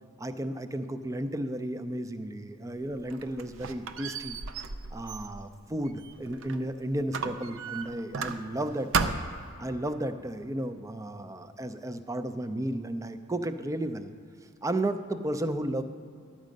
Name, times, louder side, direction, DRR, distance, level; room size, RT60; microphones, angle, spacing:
voice 1, 0.2-4.4 4.9-9.1 9.6-14.1 14.6-15.8, right 1 dB, 15° right, 10 dB, 0.4 m, -33 dB
Squeak, 2.8-6.7 7.1-8.6 8.9-9.5, right 5 dB, 70° right, 0.5 m, -34 dB
11.5 x 7.3 x 5.2 m, 2.4 s
head